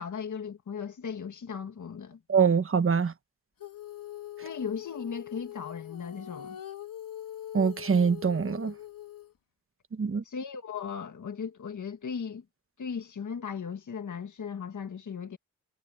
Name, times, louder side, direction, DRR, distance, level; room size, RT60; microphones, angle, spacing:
voice 1, 0.0-2.2 4.4-6.6 10.2-12.4 12.8-15.4, left 6 dB, 60° left, 1.7 m, -37 dB
voice 2, 2.3-3.1 7.5-8.7 10.0-10.2, right 6 dB, 40° right, 1.2 m, -24 dB
Female singing, 3.6-9.3, left 11 dB, 85° left, 3.1 m, -42 dB
wide cardioid pair, 105°, 33 cm